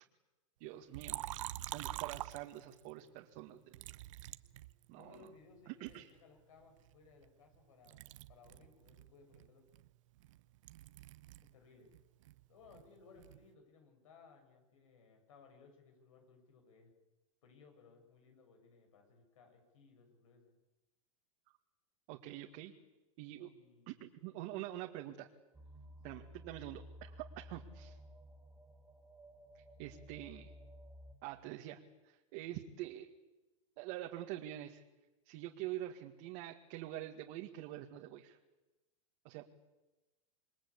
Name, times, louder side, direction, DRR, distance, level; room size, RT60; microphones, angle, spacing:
voice 1, 0.6-1.3 1.7-3.8 4.9-5.3 5.7-6.1 22.1-22.7 23.2-23.5 23.9-25.3 26.0-28.0 29.5-30.5 31.2-31.8 32.0-33.1 33.8-34.8 35.3-38.4 39.2-39.5, right 14 dB, 55° right, 2 dB, 2.0 m, -46 dB
Liquid, 0.9-2.9 3.7-5.3 5.9-7.6 7.9-11.5 11.8-13.5, right 15 dB, 70° right, 1.0 m, -47 dB
voice 2, 4.9-9.7 11.5-11.9 12.5-16.9 17.4-20.5 23.4-24.0 26.0-26.2, left 5 dB, 80° left, 5 dB, 7.3 m, -62 dB
sound 1, 25.5-31.2, equal, 10° right, 3.5 m, -55 dB
27.5 x 22.0 x 8.6 m, 1.1 s
hypercardioid pair, 120°, 17 cm